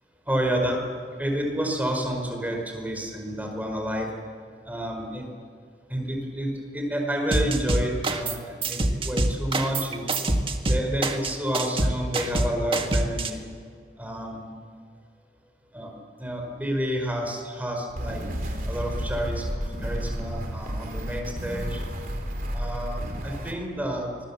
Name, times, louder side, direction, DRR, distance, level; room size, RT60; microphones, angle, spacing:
voice 1, 0.3-0.8 1.2-4.1 4.6-5.3 5.9-10.0 10.7-13.5 14.0-14.5 15.7-18.2 18.7-21.8 22.5-24.1, equal, 10° right, 2 dB, 4.8 m, -29 dB
sound 1, 7.3-8.4 8.6-13.3, right 2 dB, 30° right, 1.7 m, -25 dB
sound 2, 17.9-23.5, equal, 55° right, 3.3 m, -31 dB
25.0 x 21.0 x 7.1 m, 2.1 s
head